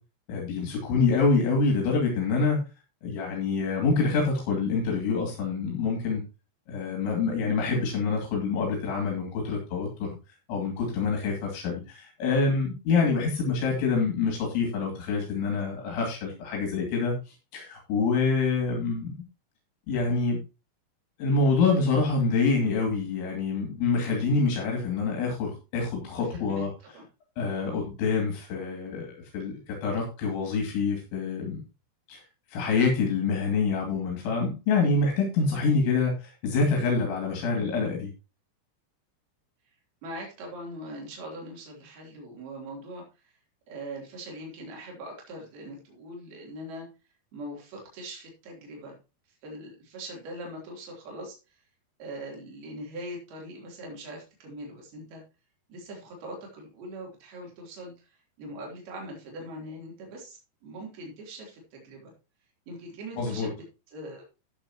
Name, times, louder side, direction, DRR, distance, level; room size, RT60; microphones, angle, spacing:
voice 1, 0.3-2.6 3.0-6.2 6.7-10.1 10.5-19.2 19.9-20.4 21.2-26.7 27.4-29.1 29.3-31.6 32.1-32.2 32.5-38.1 63.2-63.5, left 4 dB, 80° left, 0 dB, 4.9 m, -26 dB
voice 2, 26.2-26.7 26.9-27.1 27.6-27.8 40.0-43.3 43.7-46.9 47.3-49.0 49.4-51.6 52.0-55.2 55.7-62.1 62.7-64.2, right 1 dB, 60° right, -1 dB, 5.2 m, -41 dB
13.5 x 8.7 x 3.0 m, 0.30 s
omnidirectional pair, 5.3 m